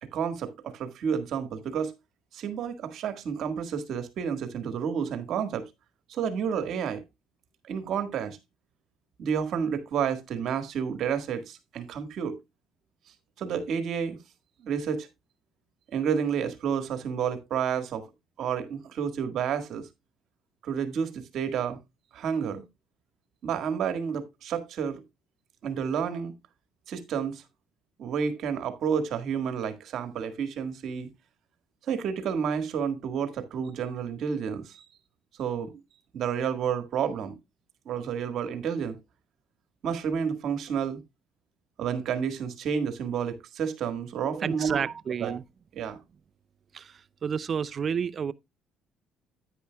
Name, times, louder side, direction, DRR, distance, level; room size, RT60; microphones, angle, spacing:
voice 1, 0.0-1.9 2.3-5.7 6.1-7.0 7.7-8.4 9.2-12.4 13.4-14.2 14.6-15.1 15.9-18.1 18.4-19.9 20.6-21.8 22.1-22.6 23.4-25.0 25.6-26.3 26.9-27.4 28.0-31.1 31.9-34.9 35.4-35.8 36.1-37.4 37.9-39.0 39.8-41.0 41.8-44.8 45.2-45.3 45.7-46.0, right 7 dB, 60° right, 1.7 m, -30 dB
voice 2, 44.3-45.4 46.7-48.3, right 7 dB, 40° right, 0.5 m, -30 dB
10.0 x 9.6 x 2.3 m
cardioid pair, 100°, 0 cm